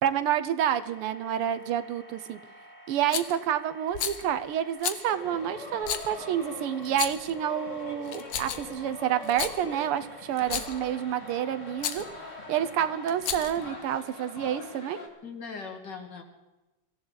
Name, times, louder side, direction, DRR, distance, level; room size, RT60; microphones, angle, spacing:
voice 1, 0.0-2.4 2.9-12.0 12.5-15.0, right 10 dB, 80° right, 12 dB, 1.7 m, -29 dB
sound 1, 0.6-13.7, right 1 dB, 20° right, 2.4 m, -51 dB
Rattle, 3.1-3.4 3.9-4.2 4.8-5.0 5.8-6.1 6.8-7.3 8.1-8.7 9.2-9.6 10.4-10.8 11.8-12.0 13.1-13.6, left 9 dB, 85° left, 2.0 m, -32 dB
sound 2, 5.1-15.1, left 3 dB, 35° left, 2.3 m, -43 dB
voice 2, 15.2-16.2, left 5 dB, 55° left, 3 dB, 2.6 m, -40 dB
24.0 x 15.0 x 4.0 m, 1.1 s
omnidirectional pair, 2.4 m